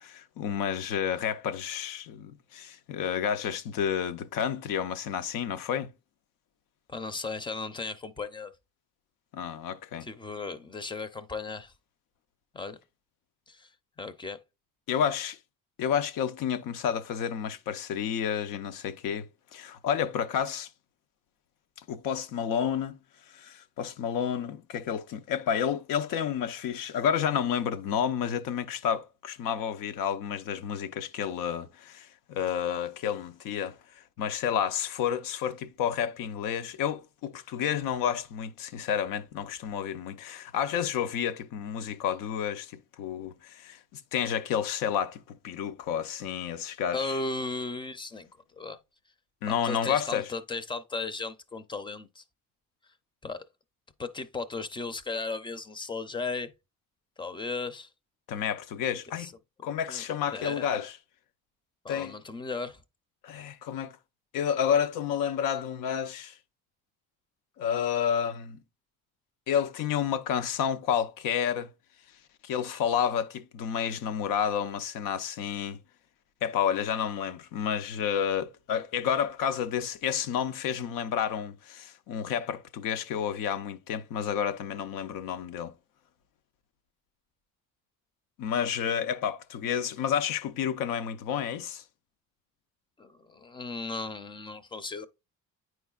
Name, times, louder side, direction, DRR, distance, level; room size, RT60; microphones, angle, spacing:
voice 1, 0.0-5.9 9.3-10.1 14.9-15.4 15.8-20.7 21.9-23.0 23.3-47.2 49.4-50.3 58.3-59.3 59.6-60.9 61.9-62.2 63.2-64.0 64.3-66.4 67.6-68.6 69.5-71.7 72.4-75.8 76.4-85.7 88.4-91.8, left 8 dB, 85° left, 0.7 m, -30 dB
voice 2, 6.9-8.5 10.0-11.7 12.5-12.8 13.5-13.7 14.0-14.4 46.9-48.8 49.5-52.2 53.2-53.4 54.0-56.5 57.2-57.9 59.2-59.3 59.9-60.0 60.3-60.7 61.8-62.8 93.0-95.1, left 3 dB, 15° left, 0.5 m, -36 dB
9.2 x 4.7 x 2.3 m
cardioid pair, 135°, 32 cm